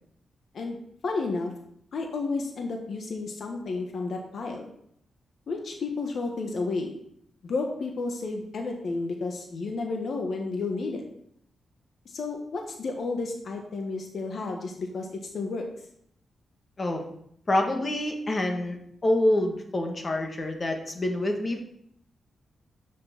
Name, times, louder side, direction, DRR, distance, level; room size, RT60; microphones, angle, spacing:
voice 1, 1.0-1.5 1.9-4.6 5.5-6.9 7.4-11.0 12.0-15.7, left 3 dB, 65° left, 2 dB, 1.3 m, -31 dB
voice 2, 17.5-18.8 19.0-21.6, left 1 dB, 35° left, 3 dB, 1.7 m, -26 dB
6.6 x 6.2 x 6.0 m, 0.72 s
cardioid pair, 85°, 0 cm